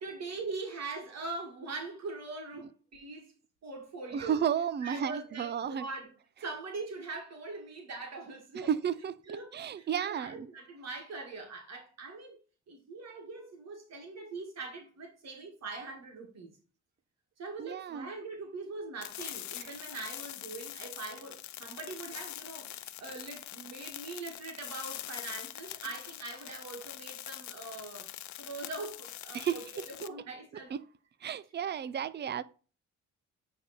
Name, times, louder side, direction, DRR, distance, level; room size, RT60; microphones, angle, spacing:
voice 1, 0.0-3.3 3.6-4.4 4.8-6.1 6.4-8.7 9.3-12.4 12.7-16.5 17.4-28.1 28.4-30.7, right 3 dB, 60° right, 2.0 m, -42 dB
voice 2, 4.1-5.9 8.6-9.1 9.5-10.5 17.6-18.1 19.6-19.7 29.3-29.9 31.2-32.4, right 8 dB, 35° right, 0.5 m, -32 dB
sound 1, 19.0-30.1, left 14 dB, 65° left, 0.6 m, -44 dB
9.3 x 3.6 x 4.1 m
cardioid pair, 90°, 30 cm